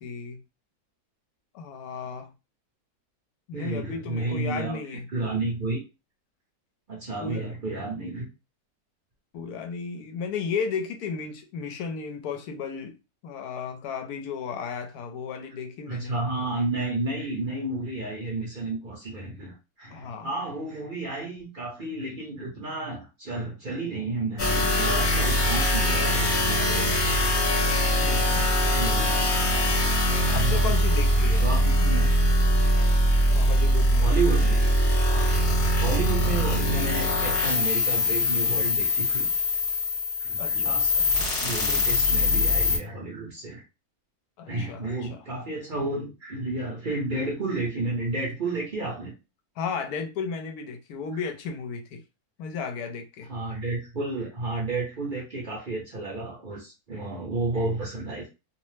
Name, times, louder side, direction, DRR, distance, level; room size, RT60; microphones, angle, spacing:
voice 1, 0.0-0.4 1.5-2.3 3.5-5.1 7.2-7.4 9.3-13.0 13.2-16.1 19.9-20.3 28.0-28.8 30.3-31.5 31.8-31.9 33.3-34.1 35.1-35.3 40.4-41.0 44.4-45.2 49.6-52.0 52.4-53.3, left 5 dB, 80° left, 1.1 m, -34 dB
voice 2, 3.5-5.8 6.9-8.3 15.9-27.2 28.7-29.3 30.2-30.7 31.4-32.1 34.0-34.7 35.8-39.3 40.2-40.9 41.4-43.6 44.5-49.1 53.3-58.3, right 2 dB, 45° right, 0.8 m, -31 dB
sound 1, 24.4-42.8, left 1 dB, 55° left, 1.2 m, -22 dB
2.7 x 2.0 x 3.1 m
omnidirectional pair, 1.6 m